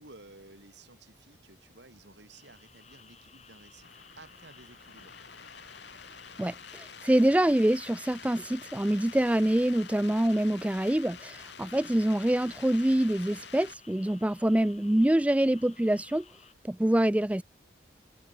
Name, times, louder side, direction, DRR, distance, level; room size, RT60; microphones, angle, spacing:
voice 1, 0.0-3.9 4.2-5.1, right 2 dB, 75° right, 6.7 m, -54 dB
sound 1, 2.3-16.5, left 6 dB, 40° left, 7.5 m, -56 dB
sound 2, 3.8-13.7, left 6 dB, 70° left, 7.9 m, -48 dB
voice 2, 6.4-16.2 16.6-17.4, right 1 dB, 5° right, 0.3 m, -25 dB
head